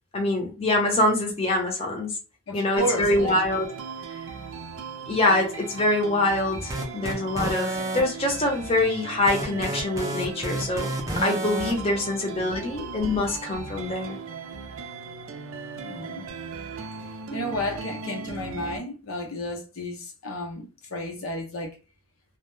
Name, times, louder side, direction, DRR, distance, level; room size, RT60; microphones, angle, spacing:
voice 1, 0.1-2.2 2.5-3.7 5.1-14.2, left 2 dB, 30° left, 0.6 m, -25 dB
voice 2, 2.5-3.4 12.6-12.7 15.8-16.2 17.3-21.8, left 1 dB, 85° left, 0.7 m, -32 dB
sound 1, 2.8-18.8, right 5 dB, 80° right, 0.4 m, -38 dB
sound 2, 6.7-8.0 9.3-11.7, right 1 dB, 15° right, 0.4 m, -30 dB
2.1 x 2.0 x 3.0 m
head